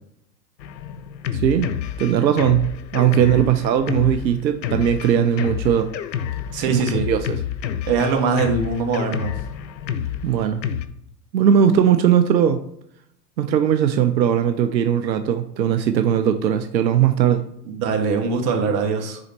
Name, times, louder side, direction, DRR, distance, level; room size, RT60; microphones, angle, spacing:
Drum kit, 0.6-10.8, left 9 dB, 85° left, 0.7 m, -29 dB
voice 1, 1.3-1.7 2.0-5.9 6.7-7.3 10.2-10.6 11.3-12.6 13.4-17.5, right 9 dB, 90° right, 9 dB, 0.6 m, -19 dB
voice 2, 6.5-7.1 7.9-9.4 17.6-19.2, right 4 dB, 45° right, 4 dB, 1.4 m, -22 dB
5.2 x 4.9 x 4.3 m, 0.73 s
hypercardioid pair, 100°, 50 cm